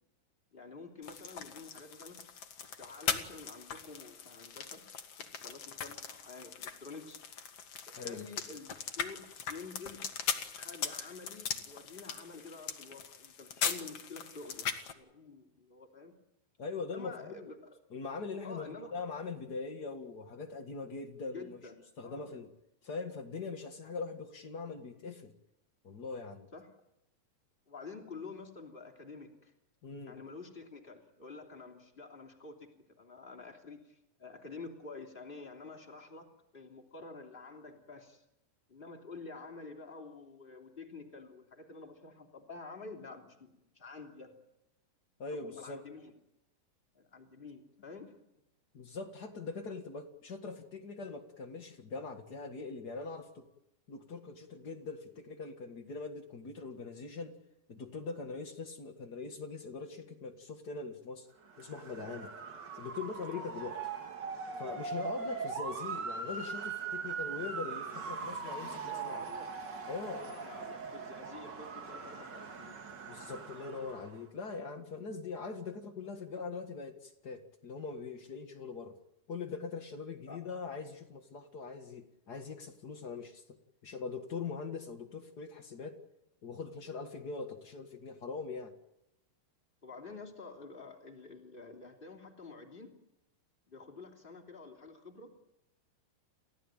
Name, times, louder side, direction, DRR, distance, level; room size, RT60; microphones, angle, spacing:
voice 1, 0.5-2.2 2.8-4.8 5.1-7.2 8.0-8.7 9.0-10.0 10.6-16.1 16.8-17.7 18.4-18.9 21.3-21.8 22.0-22.3 26.5-26.7 27.7-29.5 30.0-32.7 33.0-36.3 36.5-38.2 38.7-44.4 45.4-46.1 46.9-48.1 65.2-65.5 68.7-69.5 70.2-72.8 80.3-80.4 89.8-92.9 93.7-95.3, left 4 dB, 15° left, 3 dB, 2.5 m, -49 dB
sound 1, 1.0-14.9, left 7 dB, 50° left, 2.1 m, -40 dB
voice 2, 16.6-17.6 17.9-21.6 22.0-22.5 22.8-25.3 25.8-26.5 29.8-30.2 45.2-45.8 48.7-53.5 53.9-57.4 57.7-61.3 61.6-62.3 62.8-63.8 64.6-69.2 69.9-70.2 73.1-78.9 79.3-83.4 83.8-86.0 86.4-88.7, left 4 dB, 80° left, 4 dB, 0.9 m, -42 dB
Motor vehicle (road) / Siren, 61.5-74.2, right 5 dB, 40° right, 1.5 m, -41 dB
30.0 x 15.5 x 9.2 m, 0.88 s
omnidirectional pair, 4.9 m